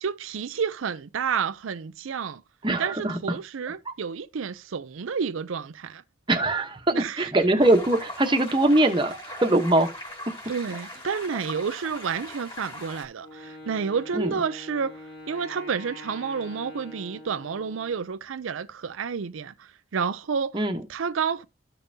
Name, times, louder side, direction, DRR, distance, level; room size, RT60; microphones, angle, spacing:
voice 1, 0.0-2.4 2.8-6.0 6.9-7.3 10.5-14.9 15.3-20.6 20.9-21.4, right 6 dB, 80° right, 0.5 m, -30 dB
voice 2, 2.6-3.2 6.3-6.8 7.2-9.1 9.4-9.9 14.1-14.3 20.5-20.8, right 1 dB, 25° right, 1.0 m, -21 dB
sound 1, 7.6-13.0, left 1 dB, 25° left, 3.3 m, -40 dB
Wind instrument woodwind instrument, 13.2-18.0, left 1 dB, 55° left, 2.8 m, -44 dB
13.5 x 5.3 x 2.7 m
head